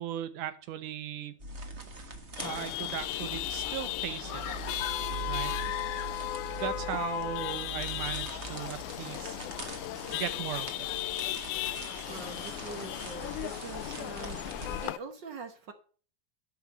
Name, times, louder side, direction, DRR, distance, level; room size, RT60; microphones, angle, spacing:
voice 1, 0.0-1.4 2.4-4.4 5.3-5.5 6.6-9.4 10.1-10.9, right 11 dB, 85° right, 12 dB, 2.5 m, -37 dB
sound 1, 1.4-14.9, right 3 dB, 35° right, 1.1 m, -42 dB
Chatter / Vehicle horn car horn honking / Traffic noise roadway noise, 2.4-15.0, left 16 dB, 85° left, 2.1 m, -36 dB
sound 2, 4.3-6.5 6.8-6.9, left 9 dB, 65° left, 1.4 m, -41 dB
voice 2, 12.1-15.7, right 5 dB, 55° right, 8 dB, 1.2 m, -44 dB
11.0 x 5.3 x 7.7 m, 0.41 s
omnidirectional pair, 3.5 m